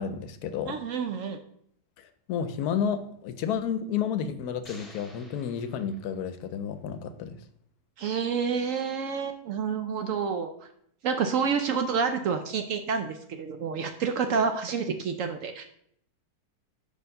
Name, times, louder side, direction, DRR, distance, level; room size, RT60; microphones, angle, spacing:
voice 1, 0.0-0.8 2.0-7.4, left 7 dB, 80° left, 11 dB, 1.1 m, -31 dB
voice 2, 0.7-1.4 8.0-10.5 11.0-15.7, right 6 dB, 70° right, 6 dB, 0.8 m, -28 dB
sound 1, 4.6-6.5, left 1 dB, 25° left, 1.3 m, -52 dB
5.0 x 4.4 x 5.3 m, 0.70 s
omnidirectional pair, 1.7 m